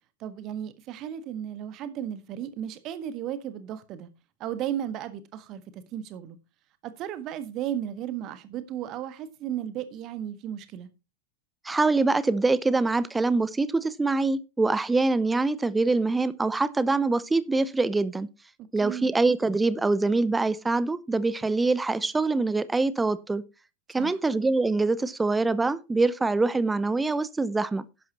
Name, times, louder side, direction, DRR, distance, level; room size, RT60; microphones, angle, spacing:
voice 1, 0.2-4.1 4.4-6.4 6.8-10.9 18.6-19.1 24.0-24.2, right 10 dB, 35° right, 1.5 m, -35 dB
voice 2, 11.6-18.3 18.7-23.4 23.9-27.9, right 3 dB, 10° right, 0.7 m, -24 dB
11.5 x 11.0 x 2.9 m
figure-of-eight pair, 90°, 0 cm